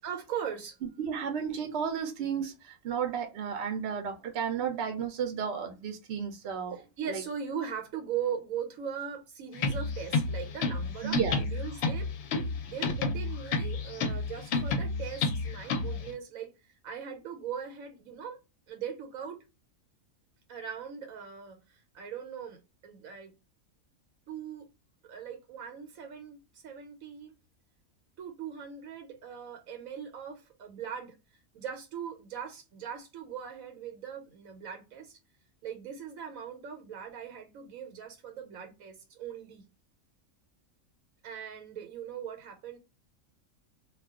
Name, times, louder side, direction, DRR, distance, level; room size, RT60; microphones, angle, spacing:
voice 1, 0.0-0.8 6.7-12.1 12.3-18.4 18.7-19.4 20.5-23.3 24.3-24.7 25.0-27.4 28.2-31.2 31.5-35.2 35.6-39.6 41.2-42.8, right 7 dB, 85° right, 1.2 m, -40 dB
voice 2, 1.0-7.2 11.0-11.4, right 7 dB, 60° right, 0.8 m, -33 dB
sound 1, 9.5-16.1, left 3 dB, 60° left, 0.8 m, -31 dB
2.4 x 2.3 x 3.5 m
omnidirectional pair, 1.4 m